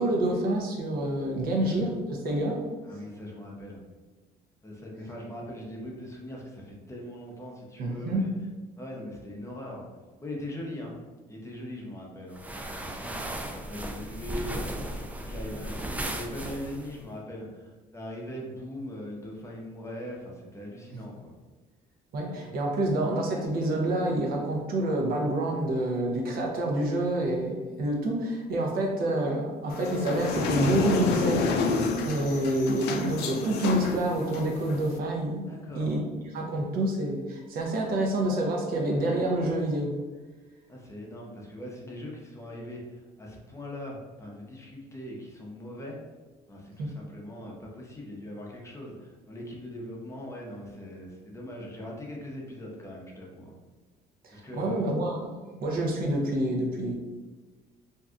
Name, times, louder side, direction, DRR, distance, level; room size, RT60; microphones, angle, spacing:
voice 1, 0.0-2.6 7.8-8.3 22.1-35.5 35.7-36.0 36.3-40.0 46.8-46.9 54.2-55.3 55.6-57.0, right 1 dB, 60° right, 0 dB, 0.7 m, -28 dB
voice 2, 1.3-2.0 2.8-3.8 4.6-8.3 8.8-9.8 10.2-11.0 11.3-12.5 12.8-14.8 15.2-21.3 35.5-36.1 40.7-46.0 46.5-53.5 54.3-54.9, left 1 dB, 15° left, -2 dB, 0.7 m, -41 dB
sound 1, 12.3-17.0, right 1 dB, 10° right, 0.3 m, -36 dB
sound 2, 29.7-35.0, left 4 dB, 80° left, 0.4 m, -30 dB
2.7 x 2.3 x 3.6 m, 1.3 s
cardioid pair, 110°, 17 cm